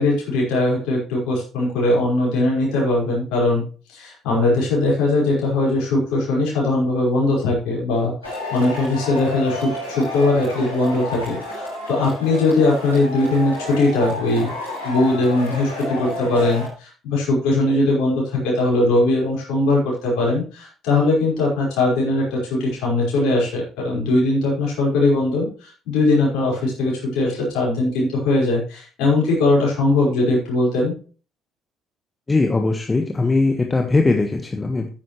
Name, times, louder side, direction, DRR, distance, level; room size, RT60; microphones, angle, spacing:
voice 1, 0.0-3.6 3.9-14.5 14.8-30.9, left 2 dB, 60° left, -4 dB, 5.1 m, -20 dB
Male speech man speaking / Shout / Clapping, 8.2-16.7, left 2 dB, 90° left, 5.1 m, -30 dB
voice 2, 32.3-34.9, left 3 dB, 20° left, 4 dB, 1.4 m, -20 dB
12.0 x 10.0 x 3.2 m, 0.37 s
figure-of-eight pair, 50°, 0 cm